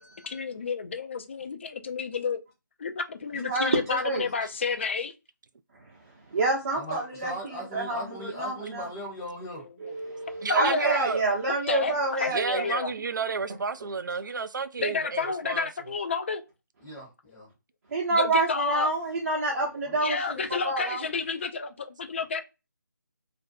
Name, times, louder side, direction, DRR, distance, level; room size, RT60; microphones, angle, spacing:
voice 1, 0.2-2.4 2.8-5.1 9.8-9.9 10.5-11.0 11.7-11.9 12.2-12.9 14.8-16.4 18.1-18.9 20.0-22.4, left 5 dB, 35° left, 0.3 m, -30 dB
voice 2, 3.3-4.3 6.3-8.9 9.8-12.7 17.9-21.0, right 2 dB, 45° right, 0.7 m, -28 dB
voice 3, 6.8-9.7 11.8-11.9 16.8-17.5 19.8-20.0, equal, 15° left, 0.7 m, -38 dB
voice 4, 10.4-11.2 12.3-15.7, right 5 dB, 65° right, 0.4 m, -31 dB
2.5 x 2.1 x 2.5 m
figure-of-eight pair, 160°, 11 cm